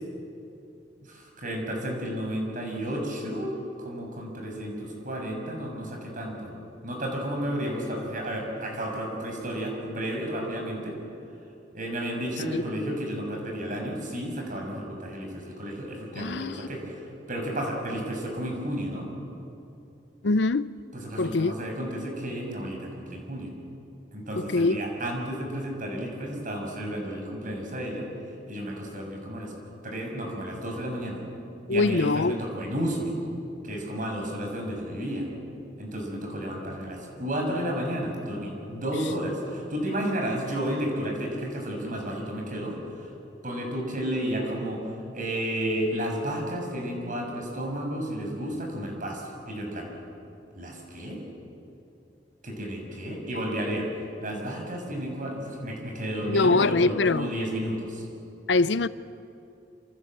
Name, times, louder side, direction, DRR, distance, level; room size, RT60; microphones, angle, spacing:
voice 1, 1.0-3.5 3.8-6.5 6.8-11.0 11.7-17.0 17.3-19.1 20.9-23.5 24.1-28.1 28.5-29.5 29.8-31.2 31.7-33.1 33.6-35.3 35.8-43.1 43.4-49.9 50.5-51.2 52.4-53.9 54.2-58.1, equal, 50° right, 6.6 m, -32 dB
voice 2, 16.2-16.6 20.2-20.7 21.2-21.5 24.4-24.8 31.7-32.4 56.3-57.3 58.5-58.9, left 3 dB, 75° left, 0.7 m, -23 dB
28.0 x 27.0 x 7.8 m
head